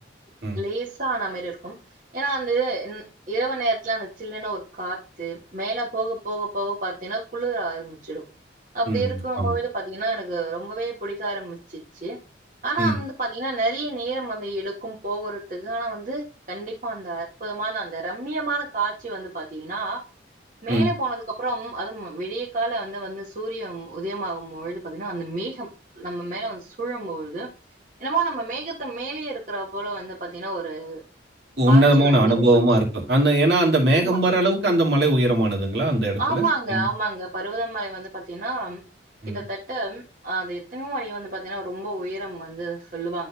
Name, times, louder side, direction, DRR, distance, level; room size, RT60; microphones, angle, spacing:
voice 1, 0.6-1.7 2.1-8.2 8.7-12.2 12.6-20.0 20.6-25.7 26.0-27.5 28.0-31.0 31.7-32.4 34.0-34.2 36.2-38.8 39.3-43.3, right 3 dB, 45° right, 1.8 m, -29 dB
voice 2, 8.9-9.5 12.8-13.0 20.7-20.9 31.6-36.4 36.7-36.8 39.2-39.4, right 1 dB, 60° right, 2.6 m, -20 dB
12.0 x 4.1 x 2.4 m
head